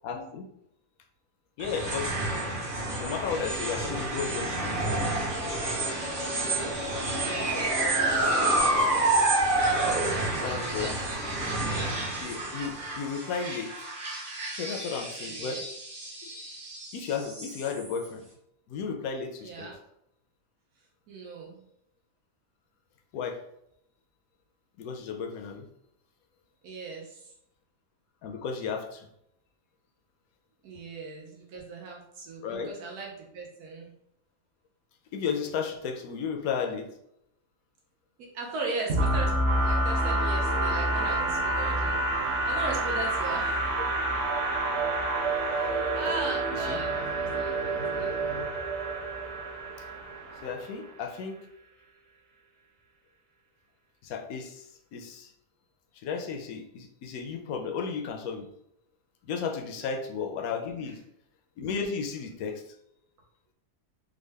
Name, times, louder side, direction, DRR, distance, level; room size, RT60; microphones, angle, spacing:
voice 1, 0.0-0.4 1.6-2.1 3.0-4.7 10.4-10.9 11.4-11.5 12.2-13.7 14.6-15.6 16.9-18.2 18.7-19.7 23.1-23.4 24.8-25.7 28.2-29.1 32.4-32.7 35.1-36.9 46.7-46.8 50.4-51.4 54.0-54.7 54.9-55.3 56.0-58.5 59.3-61.0 61.6-62.6, left 6 dB, 70° left, 4 dB, 0.9 m, -33 dB
sound 1, 1.6-18.1, right 2 dB, 40° right, 1.2 m, -29 dB
voice 2, 6.2-6.7 7.2-8.6 9.6-11.6 15.2-15.6 19.4-19.7 21.1-21.7 26.6-27.3 30.6-33.9 38.2-39.4 39.6-43.7 45.4-48.1 60.8-60.9, right 3 dB, 75° right, -1 dB, 1.2 m, -38 dB
sound 2, 38.9-50.7, right 2 dB, 55° right, 0.8 m, -28 dB
3.6 x 2.2 x 3.3 m, 0.76 s
omnidirectional pair, 1.7 m